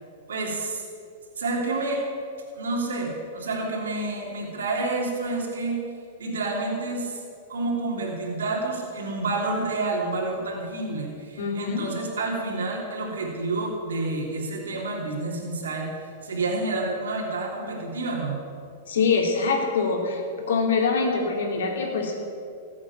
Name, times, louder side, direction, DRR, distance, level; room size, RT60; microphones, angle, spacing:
voice 1, 0.3-0.8 1.4-2.0 2.5-5.8 6.2-7.2 7.5-15.9 16.2-18.4, right 2 dB, 90° right, -2 dB, 3.1 m, -29 dB
voice 2, 11.4-11.9 18.9-20.2 20.5-22.2, left 4 dB, 80° left, 1 dB, 3.3 m, -24 dB
15.0 x 8.5 x 8.7 m, 2.4 s
hypercardioid pair, 125°, 0 cm